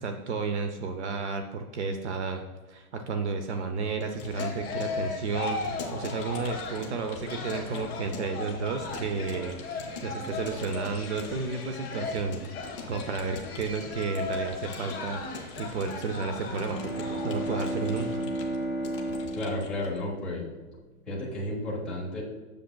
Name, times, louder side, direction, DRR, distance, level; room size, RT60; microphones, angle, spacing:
voice 1, 0.0-2.4 2.7-12.5 12.9-18.3, right 4 dB, 50° right, 6 dB, 0.6 m, -32 dB
Keyboard (musical) / Computer keyboard, 3.9-20.0, left 5 dB, 25° left, 0.5 m, -45 dB
sound 1, 4.3-18.2, left 4 dB, 45° left, 2.1 m, -37 dB
Bowed string instrument, 16.5-21.0, right 1 dB, 15° right, 1.1 m, -34 dB
voice 2, 19.3-20.5 21.1-22.2, left 1 dB, ahead, -7 dB, 0.8 m, -32 dB
7.7 x 6.6 x 2.2 m, 1.3 s
hypercardioid pair, 165°, 43 cm